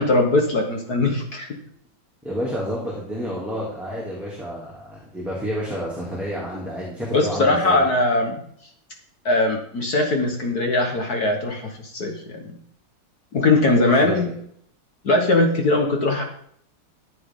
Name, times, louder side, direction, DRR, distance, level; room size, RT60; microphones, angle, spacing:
voice 1, 0.0-1.5 7.1-8.4 9.2-12.6 13.3-14.3 15.0-16.2, left 2 dB, 50° left, 2 dB, 1.7 m, -20 dB
voice 2, 2.2-7.8 14.0-14.2, equal, ahead, -5 dB, 2.5 m, -30 dB
14.0 x 8.4 x 3.8 m, 0.66 s
omnidirectional pair, 2.3 m